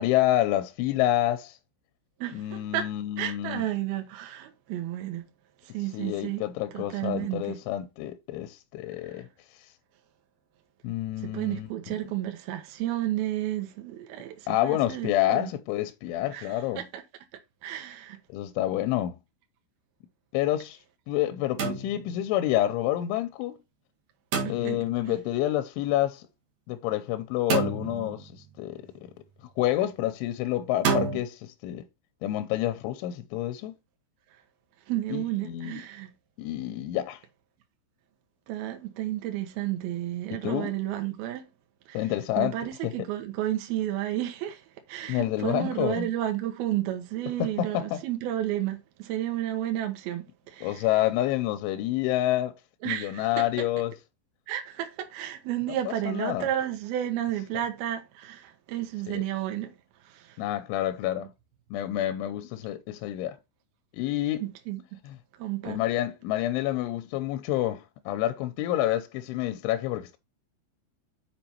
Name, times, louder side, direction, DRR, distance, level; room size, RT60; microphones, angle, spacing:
voice 1, 0.0-1.6 2.3-3.6 5.9-9.3 10.8-11.7 14.5-16.8 18.3-19.2 20.3-20.8 21.1-23.6 24.5-26.3 26.7-29.1 29.6-31.8 32.2-33.7 35.1-35.8 36.4-37.2 40.3-40.7 41.9-42.6 42.8-42.9 45.1-46.1 47.4-48.0 50.6-52.5 52.9-53.9 55.9-56.5 59.1-59.2 60.4-61.3 61.7-63.4 63.9-64.4 65.0-65.2 65.6-70.2, left 13 dB, 85° left, 2.9 m, -28 dB
voice 2, 2.2-2.9 3.2-5.2 5.6-6.4 6.7-7.6 11.2-15.5 16.3-17.0 17.6-18.2 24.4-24.8 25.1-25.2 34.9-36.1 38.5-41.5 41.9-42.1 42.4-50.9 52.8-53.5 54.5-59.7 60.1-60.4 64.4-64.8 65.4-65.8, right 13 dB, 70° right, 2.5 m, -32 dB
sound 1, 21.6-22.3 24.3-25.0 27.5-28.4 30.8-31.2, right 4 dB, 55° right, 2.1 m, -28 dB
7.1 x 5.3 x 4.4 m
omnidirectional pair, 5.9 m